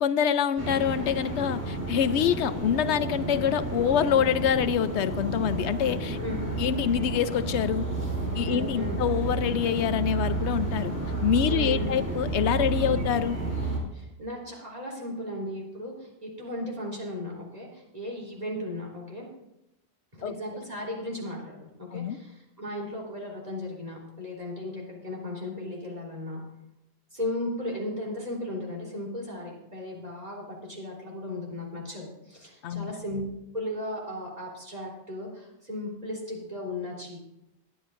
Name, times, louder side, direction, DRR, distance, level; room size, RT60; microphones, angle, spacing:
voice 1, 0.0-6.2 6.6-7.9 8.4-10.9 11.2-13.4 20.2-20.3 21.9-22.2 32.6-32.9, left 9 dB, 90° left, 13 dB, 0.9 m, -26 dB
sound 1, 0.6-13.8, right 2 dB, 15° right, 3.5 m, -31 dB
voice 2, 8.5-9.0 11.5-11.9 13.9-19.3 20.1-26.4 27.1-33.2 33.5-37.2, left 1 dB, 35° right, -3 dB, 3.5 m, -36 dB
21.5 x 10.0 x 2.5 m, 0.88 s
omnidirectional pair, 1.1 m